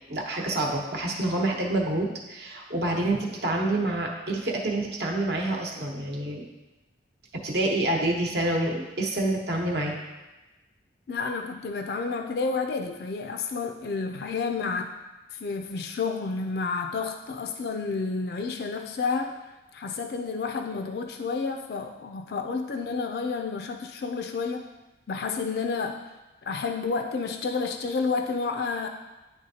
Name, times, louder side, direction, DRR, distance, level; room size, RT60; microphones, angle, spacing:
voice 1, 0.1-6.5 7.4-10.0, right 1 dB, 60° right, 0 dB, 1.0 m, -27 dB
voice 2, 11.1-14.9 15.3-19.3 19.7-24.7 25.1-26.0 26.4-28.9, left 4 dB, 55° left, 5 dB, 0.3 m, -30 dB
10.0 x 3.4 x 2.8 m, 1.1 s
head